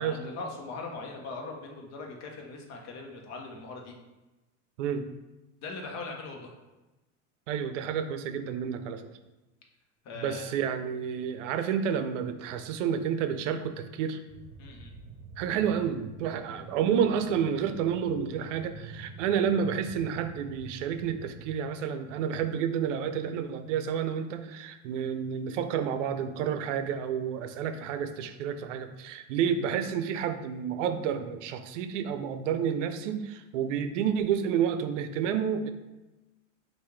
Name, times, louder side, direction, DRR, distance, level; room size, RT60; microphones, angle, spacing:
voice 1, 0.0-4.0 5.6-6.5 10.0-10.5 14.6-15.0, left 3 dB, 45° left, 1 dB, 1.0 m, -40 dB
voice 2, 7.5-9.1 10.2-14.2 15.4-35.7, right 8 dB, 85° right, 9 dB, 0.5 m, -30 dB
sound 1, 14.3-21.6, right 4 dB, 30° right, 0.9 m, -47 dB
5.5 x 2.6 x 3.2 m, 1.1 s
supercardioid pair, 115°, 36 cm